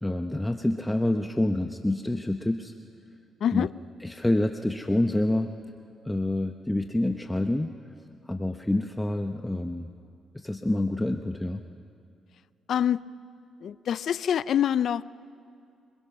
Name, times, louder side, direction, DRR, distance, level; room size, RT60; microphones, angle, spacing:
voice 1, 0.0-2.7 3.5-3.7 4.0-5.5 6.0-7.8 8.3-9.9 10.3-11.6, left 1 dB, 10° left, 5 dB, 0.8 m, -27 dB
voice 2, 12.7-13.0 13.6-15.0, left 9 dB, 65° left, 18 dB, 0.5 m, -25 dB
27.5 x 21.0 x 6.0 m, 2.5 s
cardioid pair, 90°, 0 cm